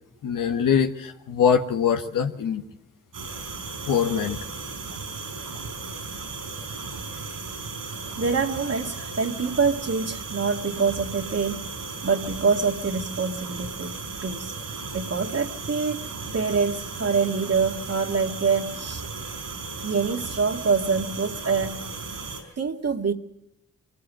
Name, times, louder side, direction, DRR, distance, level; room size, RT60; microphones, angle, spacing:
voice 1, 0.2-2.6 3.9-4.4, left 7 dB, 75° left, 5 dB, 1.4 m, -23 dB
sound 1, 3.1-22.4, right 4 dB, 80° right, 5.6 m, -35 dB
voice 2, 8.2-11.7 12.0-14.5 14.9-16.1 16.3-19.1 19.8-21.8 22.6-23.1, right 5 dB, 50° right, 3 dB, 2.1 m, -25 dB
24.0 x 15.0 x 7.6 m, 0.82 s
supercardioid pair, 45°, 32 cm